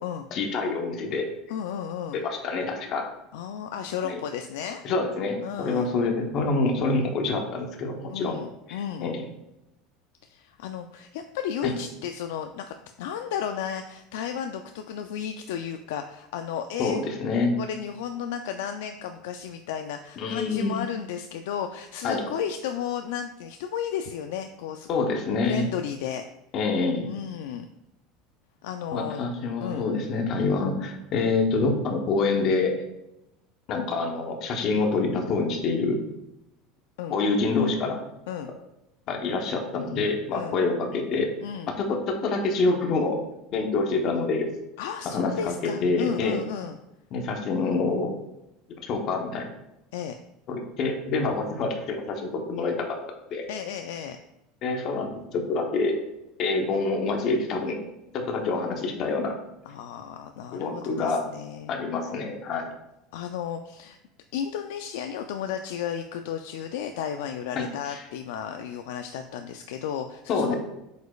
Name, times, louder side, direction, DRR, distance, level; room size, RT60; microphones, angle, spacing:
voice 1, 0.3-1.3 2.1-3.1 4.0-4.2 4.8-8.4 8.7-9.2 11.6-11.7 16.8-17.5 20.2-20.8 22.0-22.2 24.9-25.6 26.5-27.1 28.9-32.7 33.7-36.0 37.1-38.0 39.1-41.3 41.8-43.2 43.5-44.5 45.0-46.4 47.1-48.1 48.8-49.5 50.5-53.0 53.3-53.4 54.6-56.0 56.4-57.8 58.1-59.4 60.5-61.2 61.7-62.6 67.5-68.0 70.3-70.6, left 3 dB, 35° left, 3 dB, 0.9 m, -26 dB
voice 2, 1.5-2.2 3.3-4.8 5.4-5.9 8.1-9.1 10.3-12.7 13.0-17.0 17.6-24.9 25.5-26.2 27.1-27.7 28.6-29.2 29.6-29.9 37.0-37.2 38.3-38.5 40.3-40.6 41.4-41.8 44.8-46.8 49.9-50.2 53.5-54.2 59.7-61.7 63.1-64.0 64.3-70.6, left 8 dB, 90° left, 6 dB, 0.4 m, -33 dB
7.9 x 5.1 x 2.4 m, 0.89 s
cardioid pair, 175°, 0 cm